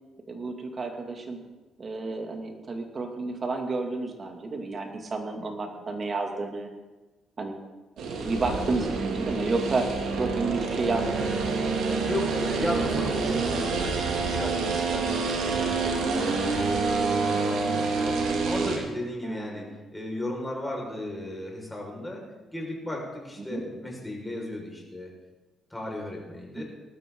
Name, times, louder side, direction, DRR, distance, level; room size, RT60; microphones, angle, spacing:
voice 1, 0.3-1.4 1.8-6.7 7.4-7.6 8.0-9.9 10.2-11.4 19.2-19.8 23.4-23.6 26.6-26.7, right 3 dB, 40° right, 3 dB, 2.5 m, -31 dB
sound 1, 8.0-18.8, right 4 dB, 85° right, 2.4 m, -27 dB
voice 2, 12.1-19.7 19.9-22.2 22.5-25.1 25.7-26.6, left 1 dB, 10° left, -1 dB, 5.3 m, -35 dB
19.5 x 12.5 x 3.9 m, 1.2 s
cardioid pair, 90°, 0 cm